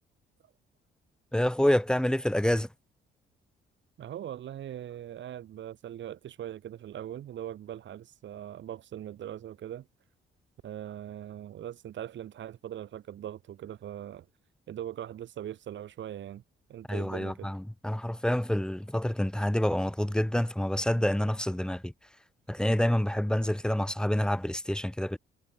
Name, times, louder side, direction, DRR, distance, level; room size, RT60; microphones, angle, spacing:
voice 1, 1.3-2.7 16.9-21.9 22.5-25.2, left 1 dB, 5° left, 4.5 m, -27 dB
voice 2, 4.0-9.9 10.6-14.3 14.7-16.4 16.7-17.6, right 11 dB, 70° right, 2.4 m, -41 dB
cardioid pair, 90°, 20 cm